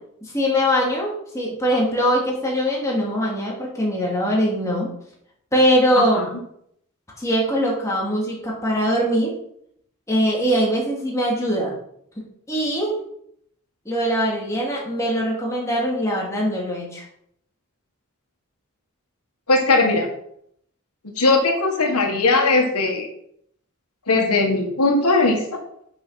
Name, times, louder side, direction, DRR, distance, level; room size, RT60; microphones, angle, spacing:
voice 1, 0.2-4.9 5.5-6.3 7.2-9.3 10.1-11.7 12.5-12.9 13.8-17.0, equal, 15° left, -4 dB, 2.6 m, -22 dB
voice 2, 19.5-20.1 21.2-23.1 24.1-25.4, left 3 dB, 90° left, 3 dB, 1.8 m, -19 dB
7.9 x 6.2 x 5.8 m, 0.71 s
head